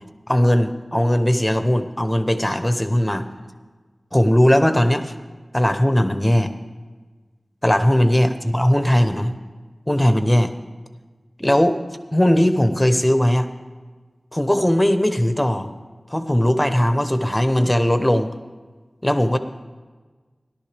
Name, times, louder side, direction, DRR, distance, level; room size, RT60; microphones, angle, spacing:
voice 1, 0.3-3.3 4.1-5.1 5.5-6.5 7.6-9.3 9.9-10.5 11.4-11.8 12.1-13.5 14.3-15.7 16.1-18.3 19.0-19.4, equal, 15° left, 9 dB, 0.9 m, -18 dB
16.5 x 11.5 x 3.4 m, 1.4 s
wide cardioid pair, 55°, 0 cm